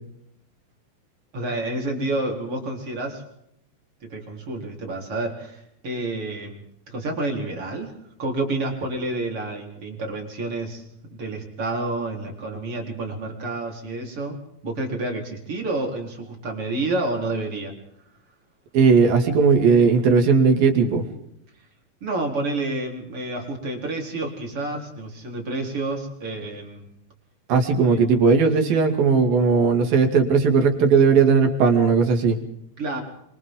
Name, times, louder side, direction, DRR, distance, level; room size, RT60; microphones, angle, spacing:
voice 1, 1.3-3.2 4.0-7.9 8.2-17.7 21.6-21.7 22.0-26.9 27.8-28.0 32.8-33.0, right 2 dB, 35° right, 1 dB, 4.9 m, -29 dB
voice 2, 18.7-21.0 27.5-32.4, right 5 dB, 75° right, 4 dB, 4.3 m, -17 dB
28.5 x 24.5 x 3.9 m, 0.77 s
omnidirectional pair, 4.2 m